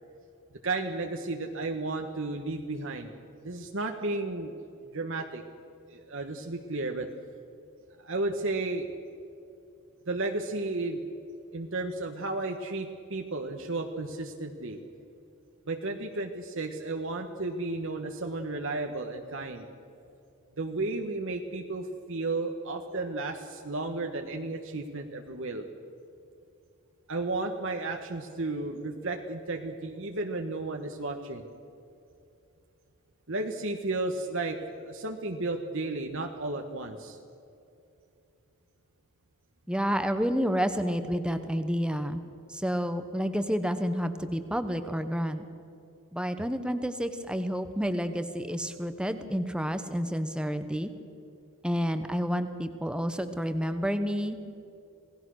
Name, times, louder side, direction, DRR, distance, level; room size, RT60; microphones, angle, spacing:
voice 1, 0.6-3.1 3.4-4.6 4.9-5.4 5.9-7.1 8.0-8.9 10.1-11.0 11.5-14.8 15.7-19.7 20.6-25.6 27.1-31.4 33.3-34.6 34.8-37.2, right 2 dB, 60° right, 3 dB, 1.4 m, -33 dB
voice 2, 39.7-42.2 42.5-45.4 46.1-50.9 51.6-54.4, equal, 5° right, 9 dB, 1.1 m, -29 dB
27.5 x 18.0 x 6.5 m, 2.6 s
head